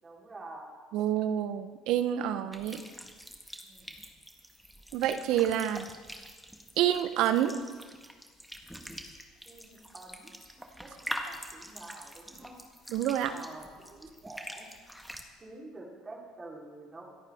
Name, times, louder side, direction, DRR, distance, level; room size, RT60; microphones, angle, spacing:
voice 1, 0.0-0.8 1.3-1.4 3.6-3.9 9.5-10.3 10.8-12.6 13.3-14.7 15.4-17.0, right 2 dB, 25° right, -2 dB, 3.8 m, -48 dB
voice 2, 0.9-2.8 4.9-5.9 6.8-7.6 12.9-13.3, right 11 dB, 70° right, 11 dB, 0.8 m, -28 dB
sound 1, 2.5-15.2, equal, ahead, 1.6 m, -45 dB
26.5 x 8.9 x 3.6 m, 1.5 s
supercardioid pair, 80°, 0 cm